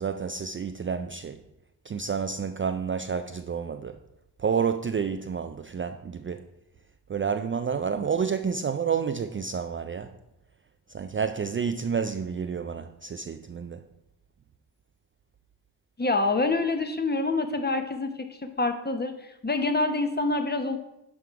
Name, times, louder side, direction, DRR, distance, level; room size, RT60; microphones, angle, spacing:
voice 1, 0.0-1.4 1.8-4.0 4.4-6.5 7.1-10.1 10.9-13.8, right 6 dB, 30° right, 0.4 m, -29 dB
voice 2, 16.0-20.8, left 3 dB, 25° left, 0.9 m, -26 dB
11.0 x 3.7 x 4.6 m
cardioid pair, 80°, 40 cm